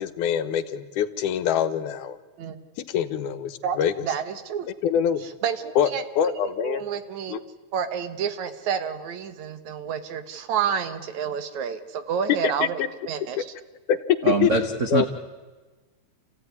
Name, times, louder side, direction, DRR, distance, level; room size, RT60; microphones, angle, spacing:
voice 1, 0.0-2.2 2.9-4.1 4.8-5.2 5.8-5.9 6.2-6.8 7.3-7.4 12.6-12.9 13.4-13.5 13.9-14.0 14.4-14.5 14.9-15.1, left 8 dB, 90° left, 9 dB, 2.6 m, -24 dB
voice 2, 4.0-4.7 5.4-7.4 7.7-12.8 13.1-13.5, right 7 dB, 70° right, 10 dB, 2.6 m, -29 dB
voice 3, 14.2-15.1, right 3 dB, 55° right, 4 dB, 0.8 m, -23 dB
28.5 x 15.5 x 9.7 m, 1.3 s
omnidirectional pair, 3.5 m